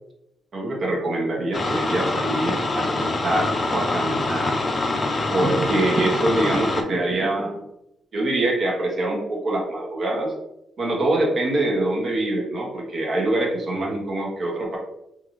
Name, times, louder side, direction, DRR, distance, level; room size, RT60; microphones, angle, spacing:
voice 1, 0.5-4.5 5.3-7.7 8.1-10.3 10.8-14.8, right 2 dB, 55° right, -2 dB, 1.0 m, -24 dB
sound 1, 1.5-6.8, left 2 dB, 40° left, 0.6 m, -25 dB
3.7 x 2.6 x 3.1 m, 0.83 s
cardioid pair, 85°, 0 cm